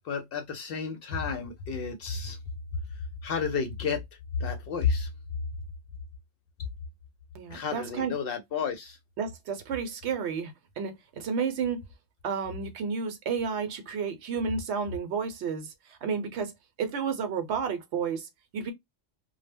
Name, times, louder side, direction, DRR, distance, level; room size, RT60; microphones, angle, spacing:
voice 1, 0.0-2.4 2.9-4.0 4.4-5.1 7.5-9.0, left 5 dB, 60° left, 0.6 m, -31 dB
voice 2, 7.3-8.1 9.2-11.9 12.2-16.5 16.8-18.7, right 6 dB, 70° right, 0.9 m, -31 dB
2.1 x 2.0 x 3.3 m
omnidirectional pair, 1.2 m